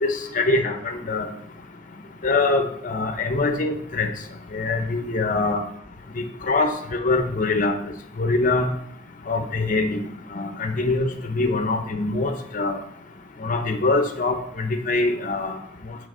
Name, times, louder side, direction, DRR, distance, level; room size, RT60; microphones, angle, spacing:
voice 1, 0.0-1.3 2.2-4.1 4.5-5.6 6.5-7.7 8.2-8.7 9.3-10.0 10.3-12.8 13.4-15.5, left 3 dB, 45° left, 7 dB, 0.7 m, -23 dB
8.7 x 3.6 x 3.8 m, 0.68 s
head